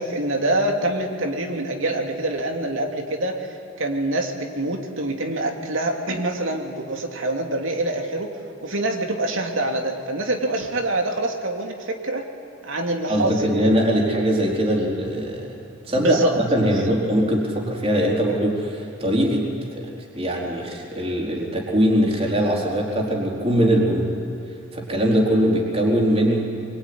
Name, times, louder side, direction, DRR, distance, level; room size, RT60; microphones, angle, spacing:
voice 1, 0.0-8.3 8.6-12.2 12.6-13.7 16.0-16.3 16.6-16.9, right 2 dB, 70° right, 3 dB, 2.9 m, -25 dB
voice 2, 13.1-15.5 15.8-19.5 19.7-19.9 20.1-24.1 24.7-26.6, equal, 30° right, -2 dB, 4.1 m, -21 dB
25.0 x 24.0 x 9.7 m, 2.6 s
head